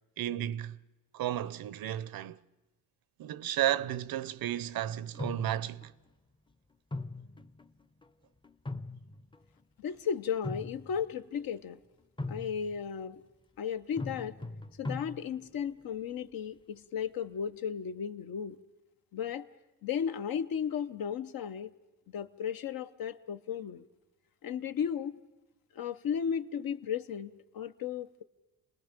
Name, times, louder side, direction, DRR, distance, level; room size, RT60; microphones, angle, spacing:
voice 1, 0.2-0.8 1.1-2.4 3.2-5.9, right 12 dB, 75° right, 0.7 m, -33 dB
sound 1, 3.8-4.3 5.1-5.9 6.9-8.0 8.4-9.6 10.2-11.1 12.2-12.9 14.0-15.6, left 2 dB, 15° left, 0.6 m, -41 dB
voice 2, 9.8-11.8 12.3-13.2 13.6-14.3 14.8-18.6 19.1-19.5 19.8-21.7 22.1-23.8 24.4-25.2 25.7-28.2, left 7 dB, 75° left, 0.9 m, -35 dB
28.5 x 19.5 x 5.2 m
cardioid pair, 95°, 36 cm